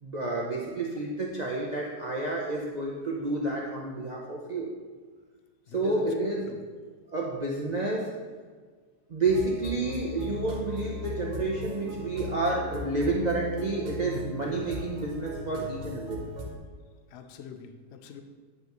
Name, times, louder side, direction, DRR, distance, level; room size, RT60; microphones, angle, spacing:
voice 1, 0.0-4.7 5.7-6.5 7.1-8.1 9.1-16.2, right 2 dB, 80° right, -3 dB, 0.3 m, -30 dB
voice 2, 5.7-6.6 17.1-18.2, left 6 dB, 90° left, 7 dB, 0.5 m, -42 dB
sound 1, 9.2-16.6, left 2 dB, 65° right, 1.6 m, -38 dB
9.2 x 5.6 x 3.0 m, 1.5 s
omnidirectional pair, 1.9 m